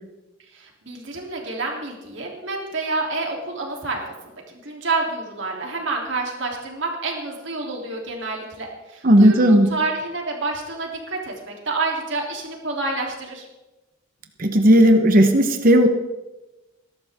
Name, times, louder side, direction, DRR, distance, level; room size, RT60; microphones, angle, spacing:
voice 1, 0.5-13.5, right 3 dB, 60° right, 0 dB, 3.3 m, -28 dB
voice 2, 9.0-9.7 14.4-15.9, equal, 40° right, 6 dB, 1.1 m, -14 dB
20.5 x 12.0 x 3.7 m, 1.0 s
head